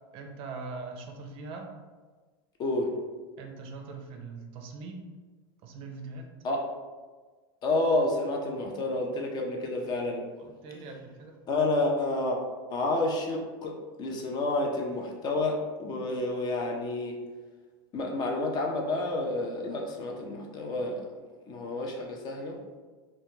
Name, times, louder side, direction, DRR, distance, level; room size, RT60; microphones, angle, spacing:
voice 1, 0.1-1.7 3.4-5.1 5.6-6.3 10.4-11.4, right 3 dB, 50° right, 3 dB, 0.4 m, -41 dB
voice 2, 2.6-2.9 6.4-6.6 7.6-10.2 11.5-12.4 12.7-17.2 17.9-21.0 21.5-22.6, left 2 dB, 35° left, 1 dB, 0.4 m, -29 dB
2.1 x 2.1 x 3.0 m, 1.4 s
supercardioid pair, 115°, 12 cm